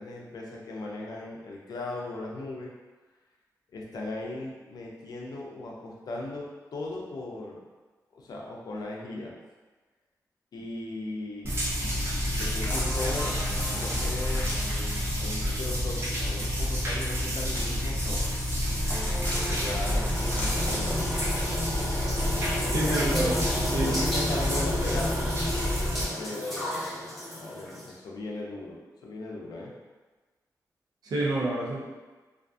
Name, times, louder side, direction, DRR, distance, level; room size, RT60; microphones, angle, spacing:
voice 1, 0.0-2.7 3.7-6.5 6.7-7.6 8.1-9.4 10.5-11.6 12.1-13.3 13.7-14.5 15.2-18.3 19.3-21.1 21.9-22.2 22.9-23.5 23.7-25.2 26.2-29.7, left 2 dB, 70° left, -2 dB, 0.5 m, -38 dB
sound 1, 11.4-26.0, equal, 35° right, 0.7 m, -29 dB
sound 2, 12.4-15.4 17.4-21.6 22.1-22.2, left 1 dB, 25° left, 0.7 m, -36 dB
sound 3, 18.3-27.9, left 1 dB, ahead, 0.9 m, -33 dB
voice 2, 22.7-24.0 31.0-31.8, right 2 dB, 80° right, -4 dB, 0.6 m, -28 dB
2.5 x 2.5 x 2.3 m, 1.3 s
wide cardioid pair, 95°, 7 cm